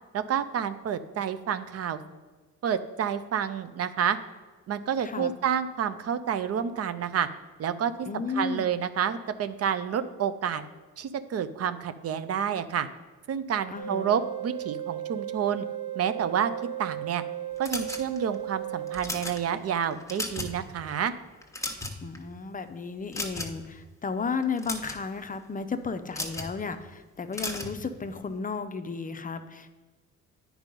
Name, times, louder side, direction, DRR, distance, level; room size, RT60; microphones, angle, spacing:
voice 1, 0.1-2.0 2.6-4.2 4.7-7.3 7.6-10.6 11.0-12.9 13.3-15.7 16.0-16.5 16.8-17.2 17.6-21.1, right 8 dB, 55° right, 12 dB, 0.6 m, -29 dB
voice 2, 8.1-8.7 13.7-14.2 22.0-29.8, left 4 dB, 30° left, 9 dB, 0.5 m, -34 dB
sound 1, 13.8-19.1, right 12 dB, 80° right, 1.1 m, -35 dB
sound 2, 17.6-18.3 18.9-19.4 19.9-20.6 20.9-21.1 21.4-22.2 23.1-23.7 24.4-25.0 26.1-26.5 27.3-27.8, left 2 dB, 10° left, 1.1 m, -34 dB
9.0 x 4.7 x 5.3 m, 1.3 s
cardioid pair, 90°, 30 cm